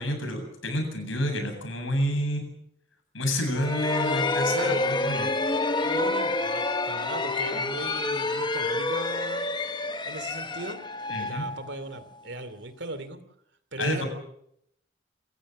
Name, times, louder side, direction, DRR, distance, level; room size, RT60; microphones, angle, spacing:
voice 1, 0.0-2.5 3.1-5.3 11.1-11.4 13.8-14.1, equal, 85° left, 5 dB, 8.0 m, -29 dB
sound 1, 3.5-12.2, left 2 dB, 25° left, 1.0 m, -28 dB
voice 2, 4.5-4.9 5.8-9.5 10.0-10.8 11.2-13.2 13.7-14.0, right 2 dB, 65° right, 12 dB, 2.7 m, -37 dB
27.5 x 15.5 x 7.5 m, 0.74 s
head